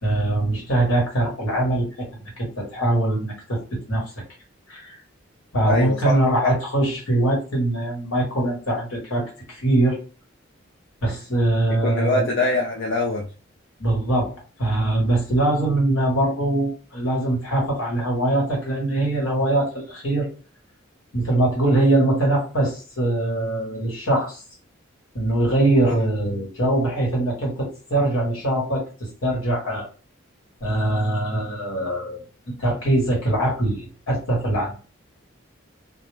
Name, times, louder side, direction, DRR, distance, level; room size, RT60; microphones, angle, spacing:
voice 1, 0.0-4.1 4.7-4.9 5.5-10.0 11.0-12.3 13.8-14.3 14.6-20.3 21.1-24.4 25.1-29.9 30.6-32.2 32.6-34.7, right 1 dB, 75° left, -1 dB, 1.2 m, -22 dB
voice 2, 5.6-6.5 11.8-13.3 25.8-26.0, left 2 dB, 55° left, -1 dB, 0.4 m, -23 dB
2.3 x 2.0 x 3.1 m, 0.35 s
head